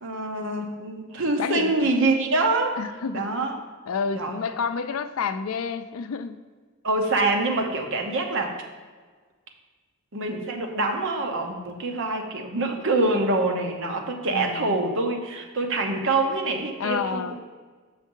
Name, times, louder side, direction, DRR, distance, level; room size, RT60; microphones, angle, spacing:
voice 1, 0.0-2.8 3.1-3.6 4.1-4.4 6.8-8.6 10.1-17.4, right 2 dB, 65° right, 3 dB, 0.9 m, -25 dB
voice 2, 1.4-1.7 2.8-3.3 3.9-6.4 14.3-14.8 16.8-17.4, left 5 dB, 75° left, 11 dB, 0.4 m, -29 dB
6.4 x 6.2 x 3.8 m, 1.4 s
head